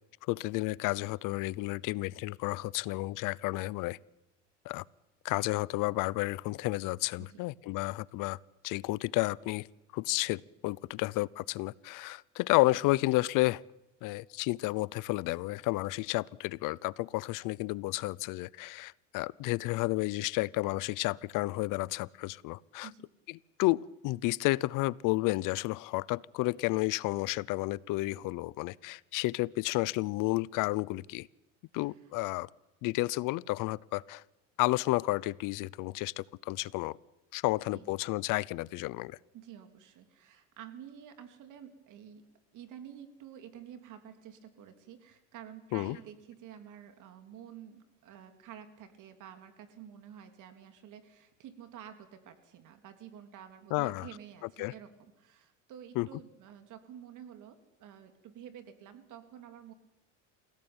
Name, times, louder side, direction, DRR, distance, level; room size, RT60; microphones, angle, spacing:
voice 1, 0.3-4.0 4.6-4.8 5.2-8.4 8.6-9.7 9.9-13.6 14.0-22.9 23.6-31.3 31.7-32.5 32.8-34.2 34.6-37.0 37.3-39.2 45.7-46.0 53.7-54.1 54.6-54.7 56.0-56.1, left 20 dB, 60° left, 23 dB, 0.8 m, -31 dB
voice 2, 31.7-32.1 37.7-37.9 39.3-42.2 42.5-54.9 55.2-59.7, right 9 dB, 55° right, 8 dB, 3.4 m, -50 dB
28.0 x 17.0 x 9.0 m, 0.97 s
supercardioid pair, 100°, 36 cm